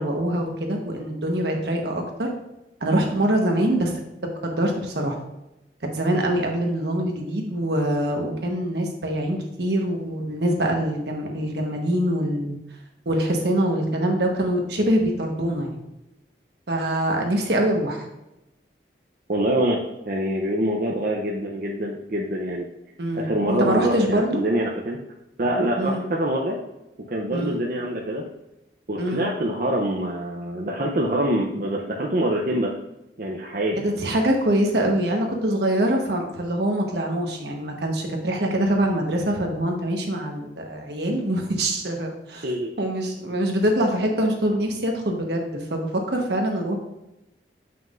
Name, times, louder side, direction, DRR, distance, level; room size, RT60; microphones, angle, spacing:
voice 1, 0.0-2.3 2.8-3.9 4.4-5.1 5.8-12.6 13.0-15.8 16.7-18.1 23.0-24.4 25.8-26.0 27.3-27.6 29.0-29.3 33.8-42.5 42.8-46.8, right 1 dB, 75° right, 2 dB, 1.2 m, -24 dB
voice 2, 19.3-19.8 20.1-22.7 23.1-25.0 25.4-26.6 27.1-28.2 28.9-32.7 33.2-33.8 42.4-42.7, right 1 dB, 50° right, -1 dB, 0.6 m, -25 dB
7.4 x 5.7 x 2.5 m, 0.92 s
head